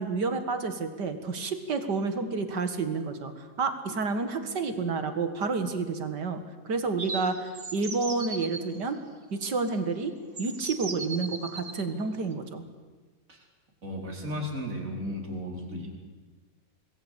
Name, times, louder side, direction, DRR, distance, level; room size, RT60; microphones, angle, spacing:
voice 1, 0.0-9.0 9.3-10.1 10.4-12.6, right 4 dB, 70° right, 8 dB, 2.5 m, -30 dB
sound 1, 7.0-8.6 9.7-9.8 10.4-11.9, right 3 dB, 35° right, 1.7 m, -38 dB
voice 2, 13.8-15.9, equal, 50° right, 1 dB, 4.8 m, -34 dB
26.5 x 20.5 x 8.4 m, 1.3 s
omnidirectional pair, 1.9 m